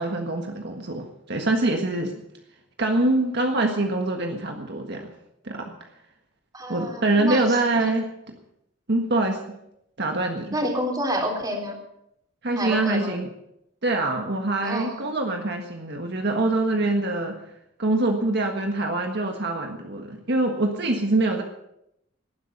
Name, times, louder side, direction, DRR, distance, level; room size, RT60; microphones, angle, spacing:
voice 1, 0.0-2.1 2.8-5.1 5.4-5.7 6.7-8.1 8.9-9.4 10.0-10.6 12.4-13.3 13.8-17.4 17.8-21.4, right 2 dB, 60° right, 3 dB, 1.6 m, -24 dB
voice 2, 6.5-7.5 7.7-7.9 10.5-11.8 12.6-13.2 14.6-15.1, equal, 20° right, 2 dB, 3.8 m, -28 dB
19.0 x 11.0 x 6.7 m, 0.81 s
head